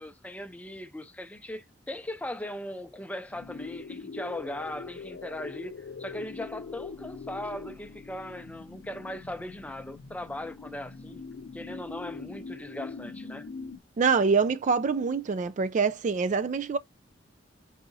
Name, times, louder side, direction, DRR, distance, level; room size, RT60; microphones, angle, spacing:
voice 1, 0.0-11.2 11.5-13.5, left 1 dB, 10° left, 0.6 m, -39 dB
sound 1, 3.3-13.8, left 4 dB, 65° left, 0.5 m, -42 dB
voice 2, 14.0-16.8, right 5 dB, 40° right, 0.3 m, -25 dB
4.8 x 4.0 x 2.7 m
head